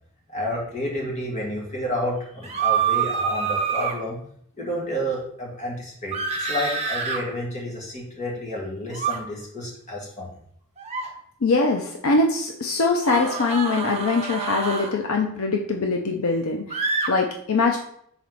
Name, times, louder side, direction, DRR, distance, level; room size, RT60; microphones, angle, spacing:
voice 1, 0.3-4.2 4.6-10.3, equal, 35° left, -3 dB, 1.9 m, -30 dB
sound 1, 2.4-3.9 6.1-7.2 8.9-9.2 10.8-11.1 13.0-14.9 16.7-17.1, right 5 dB, 30° right, 1.0 m, -26 dB
voice 2, 11.4-17.8, left 3 dB, 70° left, 2 dB, 0.6 m, -23 dB
6.0 x 4.2 x 4.0 m, 0.67 s
head